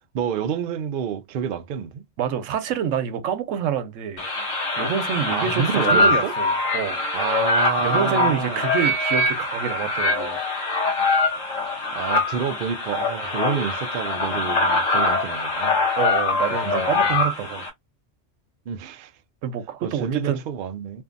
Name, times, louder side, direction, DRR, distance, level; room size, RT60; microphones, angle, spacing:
voice 1, 0.1-2.0 5.2-6.3 7.1-8.6 11.9-15.8 16.6-16.9 18.7-19.1 19.8-21.0, right 8 dB, 60° right, 0.5 m, -28 dB
voice 2, 2.2-4.3 4.8-7.0 7.8-10.7 16.0-17.7 19.4-20.4, right 8 dB, 90° right, 1.0 m, -27 dB
sound 1, 4.2-17.7, left 3 dB, 85° left, 1.2 m, -23 dB
2.6 x 2.6 x 2.4 m
omnidirectional pair, 1.3 m